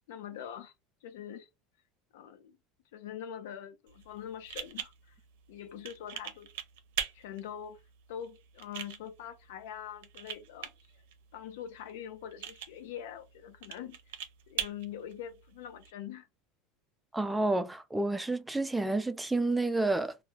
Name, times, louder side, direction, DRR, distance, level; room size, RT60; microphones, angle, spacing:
voice 1, 0.1-0.7 1.0-1.5 2.1-2.6 2.9-5.1 5.5-6.5 7.1-7.8 8.1-10.7 11.3-14.2 14.5-16.3, left 9 dB, 80° left, 0.5 m, -43 dB
sound 1, 3.9-15.9, right 9 dB, 80° right, 0.5 m, -43 dB
voice 2, 17.1-20.2, right 2 dB, 10° right, 0.4 m, -29 dB
2.3 x 2.3 x 3.0 m
supercardioid pair, 105°, 0 cm